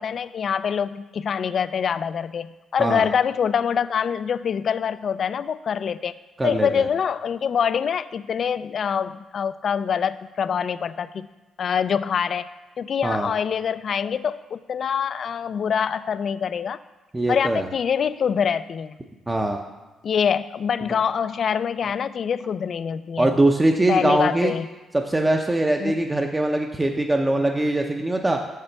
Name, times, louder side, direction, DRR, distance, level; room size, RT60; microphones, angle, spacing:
voice 1, 0.0-6.1 6.4-11.3 11.6-12.5 12.8-16.8 17.3-19.0 20.0-23.3 23.9-24.7 25.8-26.0, left 7 dB, 55° left, 14 dB, 0.3 m, -25 dB
voice 2, 6.4-6.9 13.0-13.3 17.1-17.7 19.3-19.6 23.2-24.5 25.0-28.4, right 2 dB, 15° right, 2 dB, 0.6 m, -22 dB
6.9 x 6.7 x 4.5 m, 1.2 s
cardioid pair, 90°, 0 cm